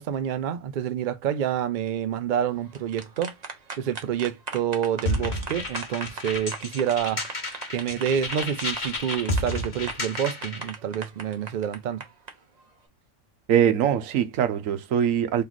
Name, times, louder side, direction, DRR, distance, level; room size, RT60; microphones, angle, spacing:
voice 1, 0.0-3.3 3.8-7.2 7.7-12.0, right 9 dB, 65° right, 0.5 m, -28 dB
clap des mains, 2.6-12.3, right 4 dB, 40° right, 0.8 m, -38 dB
sound 1, 5.1-10.7, left 2 dB, 40° left, 1.0 m, -31 dB
voice 2, 13.5-15.4, right 9 dB, 85° right, 1.1 m, -22 dB
3.1 x 3.1 x 3.9 m
omnidirectional pair, 1.3 m